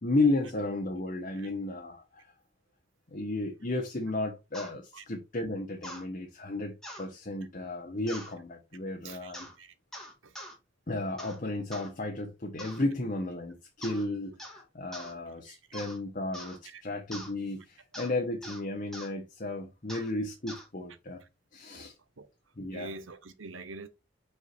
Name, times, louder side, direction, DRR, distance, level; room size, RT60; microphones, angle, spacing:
voice 1, 0.0-2.3 3.1-9.5 10.9-21.2 21.5-21.9 22.6-22.9, left 2 dB, 45° left, 1.1 m, -33 dB
sound 1, 4.5-4.7 5.8-6.0 6.8-7.1 8.1-8.3 9.3-9.6 9.9-10.5 11.2-11.4 11.7-11.9 12.6-12.8 13.8-14.1 14.4-14.6 14.9-15.1 15.7-16.0 16.3-16.6 17.1-17.3 17.9-18.1 18.4-18.6 18.9-19.1 19.9-20.1 20.5-20.7, equal, 5° left, 1.9 m, -43 dB
voice 2, 9.0-9.7 10.2-10.4 15.4-15.6 16.6-16.8 19.9-20.0 21.7-21.8 22.2-22.3 22.7-23.9, right 3 dB, 90° right, 1.0 m, -46 dB
5.5 x 4.7 x 4.4 m
head